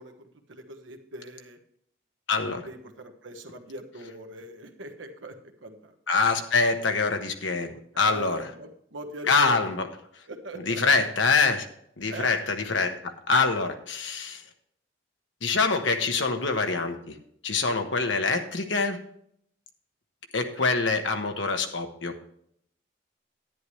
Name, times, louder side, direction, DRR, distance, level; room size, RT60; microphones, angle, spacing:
voice 1, 0.0-1.6 2.6-5.3 5.6-5.9 7.9-9.6 10.3-10.8 12.1-12.3 20.5-20.6, right 1 dB, 90° right, 6 dB, 1.3 m, -41 dB
voice 2, 2.3-2.7 6.1-8.5 9.3-9.9 10.6-11.7 12.0-14.4 15.4-17.1 17.4-19.0 20.3-22.1, left 4 dB, 80° left, 6 dB, 1.2 m, -25 dB
10.5 x 10.0 x 3.2 m, 0.70 s
head